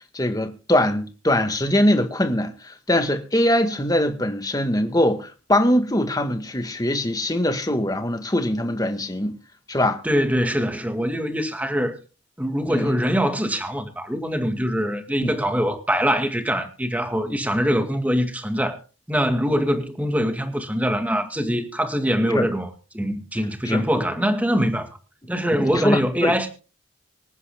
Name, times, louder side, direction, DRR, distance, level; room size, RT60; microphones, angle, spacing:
voice 1, 0.0-9.4 9.7-10.0 12.7-12.9 15.2-15.3 17.3-17.4 22.3-22.5 23.6-23.8 25.6-26.3, left 1 dB, 20° left, 1.6 m, -22 dB
voice 2, 10.0-12.0 12.4-18.8 19.1-24.9 25.3-26.5, equal, 10° right, 1.9 m, -23 dB
25.5 x 9.8 x 2.3 m
head